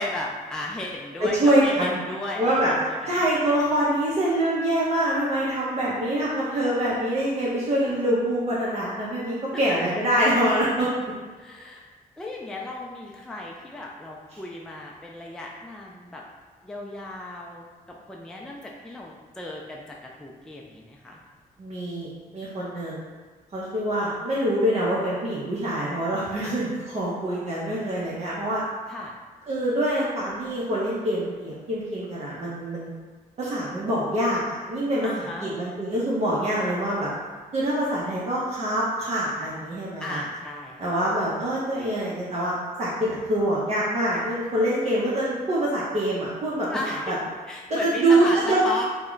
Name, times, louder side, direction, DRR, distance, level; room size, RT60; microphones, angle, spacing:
voice 1, 0.0-3.2 9.7-9.8 11.4-11.9 12.2-16.2 16.6-21.2 26.4-26.5 28.9-29.1 35.0-35.5 40.0-40.9 46.7-47.2 47.5-48.9, left 2 dB, 5° left, -2 dB, 0.3 m, -35 dB
voice 2, 1.2-2.0 2.4-2.7 3.1-10.9 21.6-23.0 23.5-26.7 26.9-28.6 29.5-32.9 33.4-37.1 37.5-40.2 40.8-42.5 42.8-47.2 47.7-48.6, right 1 dB, 45° right, -8 dB, 0.7 m, -25 dB
2.2 x 2.1 x 3.7 m, 1.4 s
cardioid pair, 80°, 15 cm